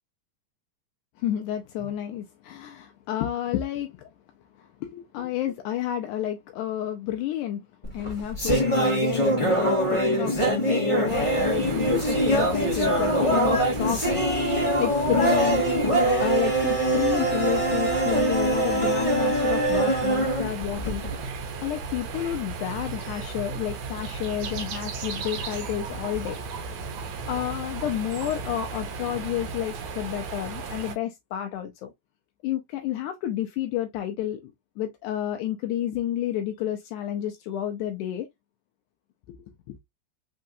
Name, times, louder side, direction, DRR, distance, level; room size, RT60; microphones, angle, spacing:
voice 1, 1.2-4.1 4.6-7.7 7.9-21.0 21.6-26.4 27.3-31.9 32.4-34.5 34.8-38.3 39.3-39.4 39.7-39.8, left 11 dB, 80° left, 1.9 m, -30 dB
sound 1, 7.8-21.3, right 1 dB, 20° left, 0.9 m, -23 dB
sound 2, 11.1-30.9, right 4 dB, 65° right, 2.2 m, -35 dB
5.5 x 3.7 x 2.6 m
omnidirectional pair, 3.9 m